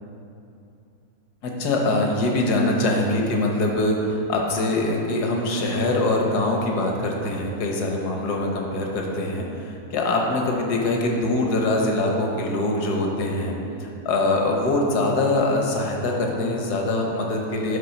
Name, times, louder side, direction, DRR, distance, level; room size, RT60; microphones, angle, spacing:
voice 1, 1.4-13.5 13.8-17.8, left 2 dB, 80° left, 0 dB, 1.5 m, -23 dB
9.4 x 3.5 x 5.9 m, 2.7 s
omnidirectional pair, 1.7 m